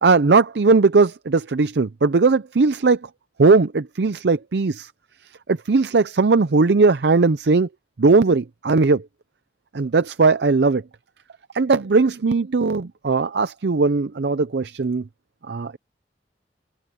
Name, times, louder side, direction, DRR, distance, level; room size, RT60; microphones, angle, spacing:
voice 1, 0.0-3.0 3.4-4.9 5.5-7.7 8.0-9.0 9.7-10.8 11.5-15.0 15.5-15.8, right 4 dB, 65° right, 0.6 m, -18 dB
head